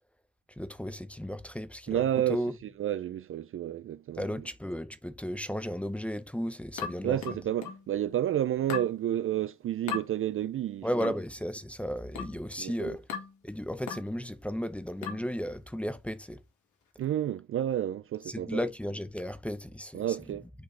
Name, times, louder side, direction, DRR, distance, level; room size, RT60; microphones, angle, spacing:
voice 1, 0.6-2.0 2.3-2.5 4.2-7.2 10.8-13.0 13.4-16.4 18.3-20.0, equal, 5° left, 0.6 m, -34 dB
voice 2, 1.9-4.5 7.0-11.1 12.6-13.0 17.0-18.6 19.9-20.5, right 11 dB, 45° right, 0.4 m, -31 dB
sound 1, 6.8-7.9 8.7-9.0 9.9-10.1 11.0-11.3 12.2-12.4 13.1-13.4 13.9-14.1 15.0-15.3, left 7 dB, 75° left, 2.0 m, -37 dB
8.2 x 3.1 x 3.8 m
cardioid pair, 90°, 30 cm